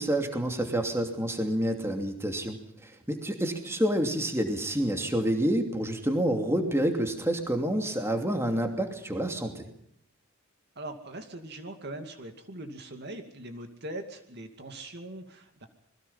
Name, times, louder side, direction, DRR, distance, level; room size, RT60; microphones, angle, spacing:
voice 1, 0.0-9.7, right 1 dB, 10° right, 4 dB, 2.7 m, -28 dB
voice 2, 10.8-15.7, right 1 dB, 50° right, 6 dB, 2.4 m, -41 dB
27.5 x 21.5 x 5.7 m, 0.71 s
head